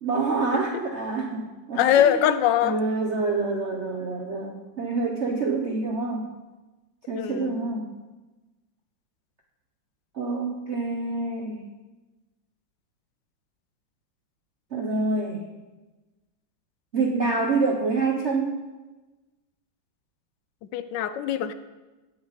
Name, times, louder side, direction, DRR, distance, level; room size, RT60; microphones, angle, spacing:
voice 1, 0.0-2.3 2.6-6.3 7.1-7.9 10.1-11.7 14.7-15.5 16.9-18.6, right 3 dB, 50° right, 1 dB, 0.8 m, -27 dB
voice 2, 1.7-2.8 7.1-7.5 20.7-21.5, left 10 dB, 70° left, 12 dB, 1.2 m, -22 dB
17.5 x 7.0 x 4.0 m, 1.2 s
omnidirectional pair, 2.2 m